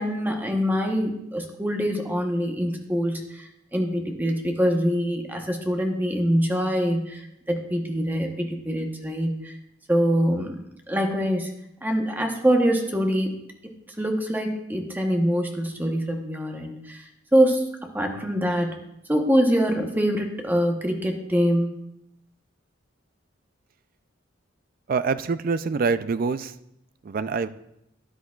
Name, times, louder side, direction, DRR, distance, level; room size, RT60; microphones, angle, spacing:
voice 1, 0.0-9.6 9.9-10.6 10.9-11.5 11.8-13.3 14.0-17.6 17.9-18.8 19.1-21.7, equal, 10° right, 2 dB, 1.0 m, -24 dB
voice 2, 24.9-26.6 27.0-27.5, right 4 dB, 45° right, 13 dB, 0.4 m, -25 dB
12.5 x 10.0 x 2.4 m, 0.81 s
head